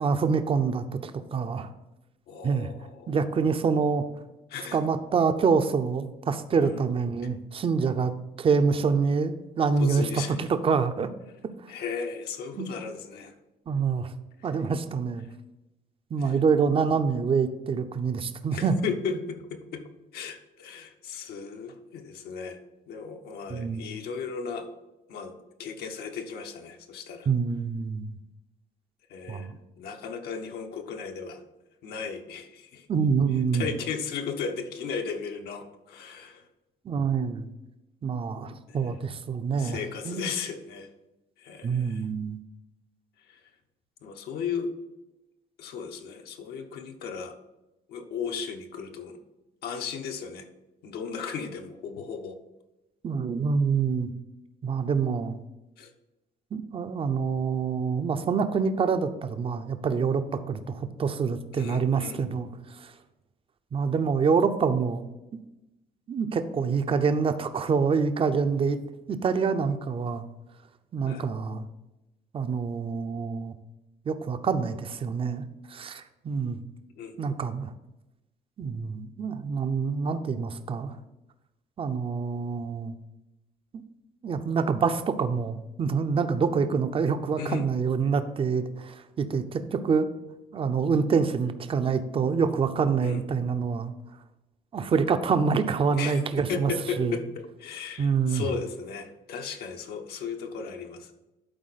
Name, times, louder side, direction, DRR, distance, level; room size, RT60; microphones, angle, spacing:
voice 1, 0.0-1.7 2.4-2.7 3.1-4.0 4.7-8.1 8.4-11.1 11.6-11.7 12.6-12.7 13.7-14.1 14.4-15.2 16.1-18.8 23.5-23.9 27.3-28.2 29.3-29.6 32.9-33.7 36.8-37.5 38.0-39.8 40.1-40.3 41.6-42.4 53.0-54.1 54.6-55.4 56.5-62.9 63.7-65.0 66.1-68.8 69.1-70.2 70.9-71.7 72.3-73.5 74.1-76.6 77.2-77.7 78.6-81.0 81.8-82.9 84.2-90.1 90.5-93.9 94.7-96.7 97.0-97.2 98.0-98.5, right 5 dB, 35° right, 10 dB, 0.6 m, -26 dB
voice 2, 2.3-3.2 4.5-4.8 6.6-6.8 9.8-10.5 11.7-13.3 14.4-14.5 16.2-16.4 18.5-22.6 22.9-24.7 25.1-25.3 25.6-27.3 29.1-31.4 31.8-32.9 33.5-36.5 38.7-38.9 39.6-40.9 41.4-42.0 43.3-43.4 44.0-44.7 45.6-47.3 47.9-49.2 49.6-50.5 50.8-52.4 55.8-55.9 61.5-62.2 71.1-71.2 77.0-77.2 87.4-87.7 93.0-93.2 95.9-101.1, left 6 dB, 70° left, 4 dB, 1.1 m, -36 dB
11.5 x 4.3 x 4.1 m, 0.99 s
cardioid pair, 110°, 17 cm